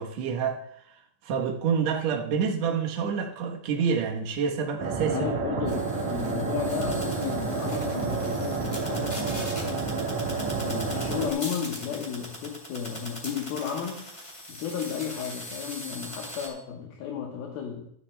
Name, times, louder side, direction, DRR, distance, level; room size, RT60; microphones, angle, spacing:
voice 1, 0.0-5.3, right 6 dB, 75° right, 1.6 m, -28 dB
sound 1, 4.8-11.3, right 4 dB, 50° right, 2.9 m, -29 dB
voice 2, 5.1-9.6 10.6-14.1 14.5-17.9, left 8 dB, 70° left, 2.8 m, -33 dB
sound 2, 5.7-16.5, left 1 dB, 15° left, 2.2 m, -41 dB
15.0 x 13.0 x 2.2 m
omnidirectional pair, 4.7 m